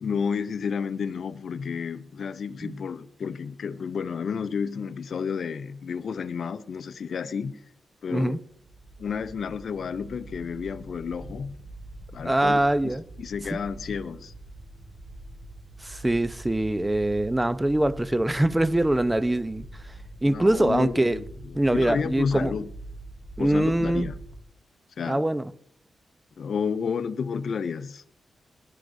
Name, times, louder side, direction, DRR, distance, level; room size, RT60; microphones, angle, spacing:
voice 1, 0.0-7.6 8.0-8.4 9.0-11.6 12.1-14.3 20.2-22.7 23.4-24.2 25.0-25.2 26.4-28.0, left 6 dB, 70° left, 0.6 m, -31 dB
sound 1, 8.5-24.4, right 2 dB, 75° right, 4.6 m, -43 dB
voice 2, 12.2-13.0 13.5-13.6 15.8-19.7 20.2-21.2 21.5-22.5 23.4-24.1 25.1-25.5, right 1 dB, 15° right, 0.7 m, -23 dB
20.0 x 11.5 x 2.7 m
supercardioid pair, 50°, 0 cm